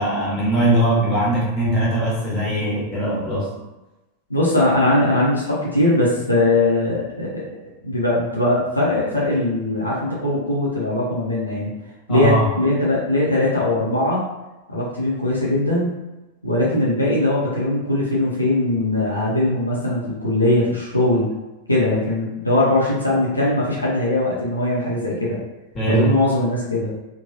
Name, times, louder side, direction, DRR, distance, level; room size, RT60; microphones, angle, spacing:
voice 1, 0.0-3.5 12.1-12.4 25.7-26.1, right 1 dB, 25° left, -7 dB, 1.4 m, -20 dB
voice 2, 4.3-7.4 7.8-11.7 12.1-14.2 14.7-15.9 16.4-21.3 21.7-25.4 25.9-26.9, left 1 dB, 85° left, -6 dB, 0.6 m, -20 dB
3.0 x 2.2 x 2.7 m, 1.0 s
figure-of-eight pair, 90°, 0 cm